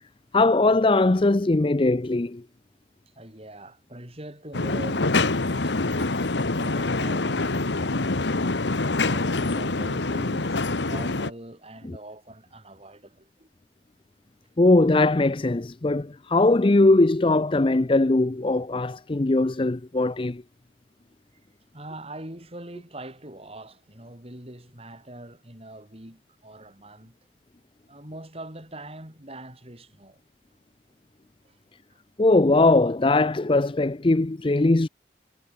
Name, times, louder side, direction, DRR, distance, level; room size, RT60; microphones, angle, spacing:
voice 1, 0.3-2.4 11.9-12.0 14.6-20.4 32.2-34.9, left 2 dB, 30° left, 0.6 m, -20 dB
voice 2, 3.1-8.3 9.0-13.5 21.7-27.2 27.9-30.2 31.4-31.6 31.9-32.0, right 1 dB, 35° right, 5.7 m, -43 dB
sound 1, 4.5-11.3, left 3 dB, 80° left, 1.4 m, -25 dB
head